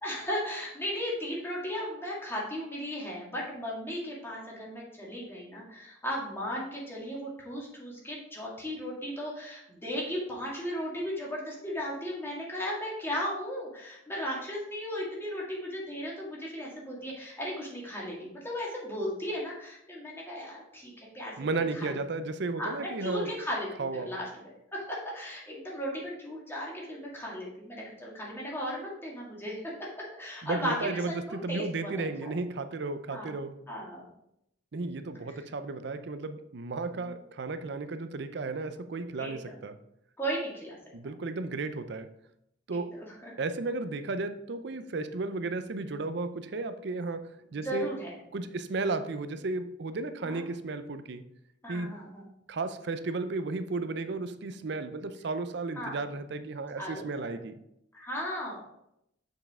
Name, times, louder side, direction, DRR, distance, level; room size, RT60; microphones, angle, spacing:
voice 1, 0.0-21.3 21.7-21.9 22.6-23.7 24.0-24.3 24.7-29.9 30.2-31.9 32.2-32.3 33.1-33.4 33.7-34.1 36.9-37.1 39.2-39.3 40.2-40.8 42.9-43.3 47.5-48.2 50.2-50.4 51.6-52.3 55.8-56.0 56.8-57.4 57.9-58.6, equal, 15° left, 2.0 m, -36 dB
voice 2, 21.4-23.3 23.8-24.1 30.4-33.6 34.7-39.8 40.9-42.1 42.7-43.0 43.4-47.9 48.3-51.2 51.7-52.0 52.5-57.5, right 3 dB, 65° right, 0.5 m, -34 dB
7.0 x 5.6 x 3.6 m
head